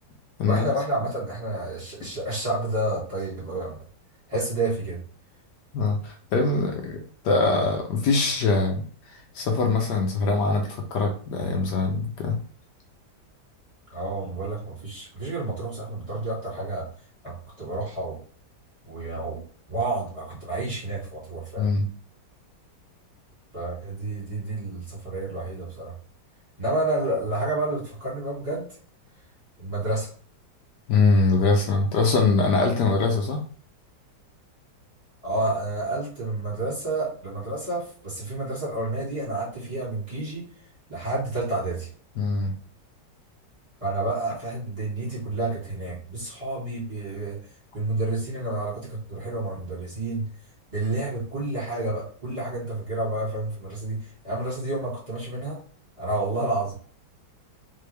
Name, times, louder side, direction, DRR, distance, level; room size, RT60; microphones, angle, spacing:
voice 1, 0.4-3.8 4.3-5.0 13.9-16.9 17.2-18.2 18.8-19.4 19.7-21.7 23.5-25.9 26.6-28.7 29.6-30.1 35.2-40.4 40.9-41.9 43.8-47.4 47.7-50.2 50.7-54.0 54.2-55.6 56.0-56.7, right 2 dB, 20° right, -8 dB, 2.4 m, -29 dB
voice 2, 5.7-8.8 9.3-12.4 21.6-21.9 30.9-33.4 42.2-42.5, left 3 dB, 75° left, 2 dB, 1.4 m, -23 dB
3.8 x 3.7 x 3.3 m, 0.43 s
omnidirectional pair, 1.9 m